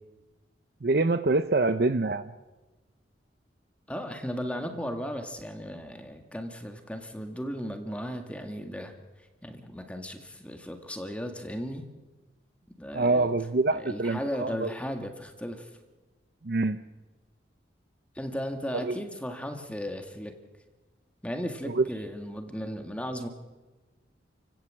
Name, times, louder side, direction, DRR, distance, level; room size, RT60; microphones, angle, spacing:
voice 1, 0.8-2.2 12.9-14.7 16.4-16.8 18.8-19.0 21.7-21.8, right 3 dB, 60° right, 11 dB, 0.7 m, -25 dB
voice 2, 3.9-11.8 12.8-13.3 13.7-15.8 18.2-20.3 21.2-23.3, equal, 5° left, 5 dB, 1.8 m, -36 dB
29.0 x 17.0 x 7.6 m, 1.2 s
head